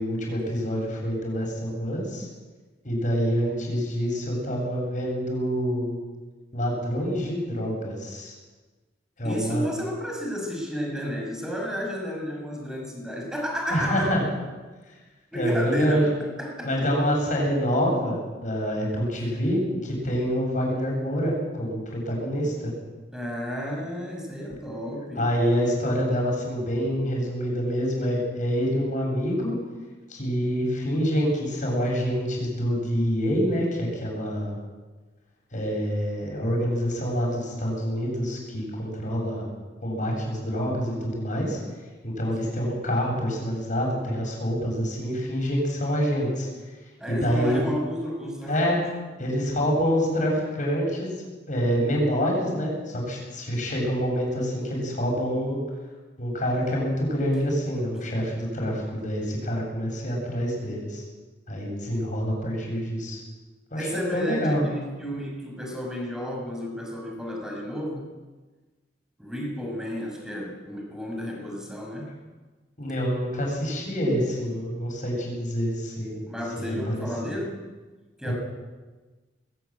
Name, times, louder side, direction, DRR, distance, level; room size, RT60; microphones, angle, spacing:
voice 1, 0.0-2.3 2.8-6.0 6.5-8.3 9.2-9.7 13.7-14.2 15.3-16.1 16.6-22.7 25.2-29.5 30.1-34.5 35.5-39.5 39.8-41.6 42.0-46.5 47.1-47.6 48.5-48.8 49.2-51.1 51.5-55.6 56.2-61.0 61.5-63.2 63.7-64.6 72.8-76.2 76.6-77.1 78.2-78.3, equal, 45° left, -1 dB, 7.9 m, -26 dB
voice 2, 9.2-14.1 15.3-16.9 23.1-25.3 42.4-42.7 47.0-48.8 63.7-68.1 69.2-72.1 76.3-77.6 78.2-78.3, equal, 5° right, 0 dB, 5.7 m, -32 dB
21.0 x 14.0 x 9.4 m, 1.3 s
head